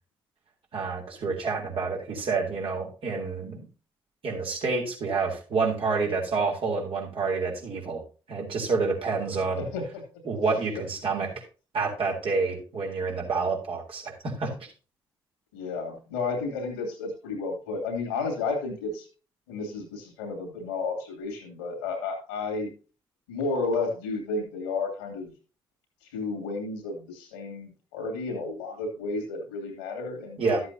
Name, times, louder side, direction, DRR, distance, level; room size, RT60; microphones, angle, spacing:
voice 1, 0.7-3.7 4.2-8.0 8.3-9.7 10.2-11.4 11.7-14.5 30.4-30.6, right 4 dB, 55° right, 0 dB, 3.6 m, -28 dB
voice 2, 9.6-10.0 15.5-19.1 19.5-22.8 23.3-25.3 26.1-30.6, left 3 dB, 80° left, 3 dB, 2.6 m, -32 dB
13.0 x 7.8 x 2.8 m, 0.33 s
figure-of-eight pair, 40°, 11 cm